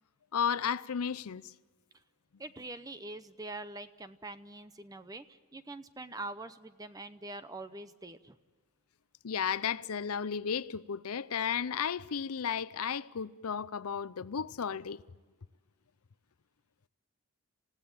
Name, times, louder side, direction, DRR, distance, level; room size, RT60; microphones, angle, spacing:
voice 1, 0.3-1.5 9.2-15.0, left 7 dB, 80° left, 0.6 m, -33 dB
voice 2, 2.4-8.4, right 2 dB, 15° right, 0.7 m, -44 dB
28.0 x 16.5 x 8.8 m
head